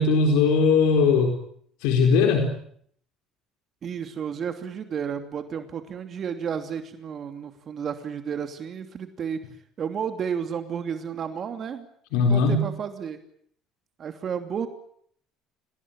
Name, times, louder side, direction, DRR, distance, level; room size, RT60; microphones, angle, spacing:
voice 1, 0.0-1.4 1.8-2.5 12.1-12.6, left 4 dB, 75° left, 4 dB, 4.3 m, -19 dB
voice 2, 3.8-9.4 9.8-11.9 12.1-13.2 14.0-14.7, right 7 dB, 45° right, 7 dB, 2.9 m, -32 dB
27.5 x 19.5 x 9.1 m, 0.66 s
hypercardioid pair, 65°, 0 cm